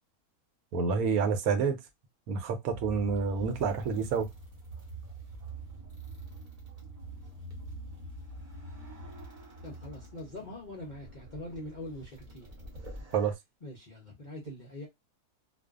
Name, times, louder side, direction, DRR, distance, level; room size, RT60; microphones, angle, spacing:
voice 1, 0.7-1.8 2.3-4.3 13.1-13.3, right 5 dB, 70° right, 1.0 m, -28 dB
sound 1, 2.7-13.3, right 2 dB, 35° right, 0.6 m, -45 dB
voice 2, 9.6-12.5 13.6-14.9, left 1 dB, 55° left, 0.5 m, -43 dB
2.5 x 2.3 x 2.3 m
omnidirectional pair, 1.7 m